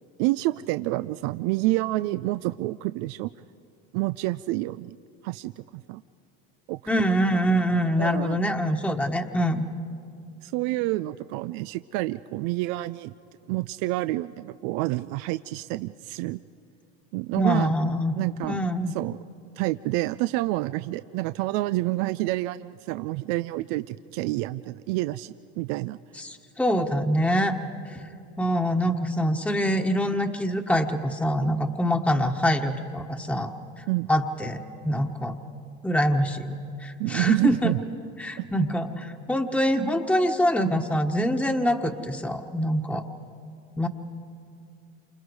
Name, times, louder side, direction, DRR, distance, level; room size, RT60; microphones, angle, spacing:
voice 1, 0.2-3.3 3.9-5.0 5.2-6.0 6.7-6.8 8.0-8.4 10.4-13.1 13.5-16.4 17.1-17.9 18.2-18.6 18.9-19.2 19.6-26.0 33.9-34.1 37.0-37.8 38.4-38.5, right 18 dB, 75° right, 13 dB, 0.5 m, -28 dB
voice 2, 6.9-9.6 17.4-18.2 18.4-18.9 26.2-27.6 27.9-28.0 28.4-33.5 33.8-34.6 34.8-35.3 35.8-37.7 38.2-43.0 43.8-43.9, equal, 5° left, 4 dB, 1.4 m, -25 dB
28.0 x 27.0 x 4.8 m, 2.5 s
supercardioid pair, 80°, 33 cm